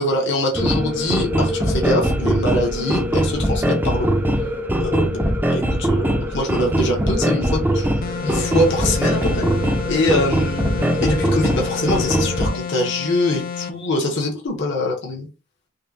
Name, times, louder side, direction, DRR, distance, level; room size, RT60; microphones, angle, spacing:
voice 1, 0.0-4.1 4.8-5.2 5.5-7.9 8.2-9.5 9.9-15.3, left 1 dB, 55° left, -1 dB, 1.1 m, -23 dB
sound 1, 0.5-12.5, equal, 10° right, 0.6 m, -21 dB
sound 2, 8.0-13.8, left 7 dB, 40° left, 0.5 m, -30 dB
5.3 x 2.2 x 2.7 m, 0.32 s
head